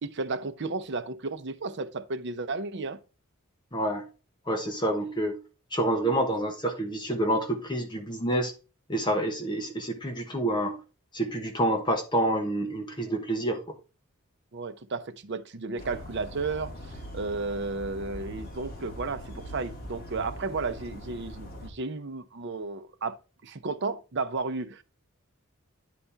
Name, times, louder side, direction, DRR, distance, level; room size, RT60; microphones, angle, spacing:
voice 1, 0.0-3.0 14.5-16.7 17.1-23.2 23.4-24.8, right 3 dB, 55° right, 0.7 m, -33 dB
voice 2, 3.7-4.1 4.5-5.4 5.7-8.5 8.9-10.8 11.1-13.6, right 1 dB, 20° left, 1.1 m, -28 dB
sound 1, 15.8-21.7, equal, 45° left, 2.1 m, -42 dB
10.0 x 4.2 x 3.4 m
head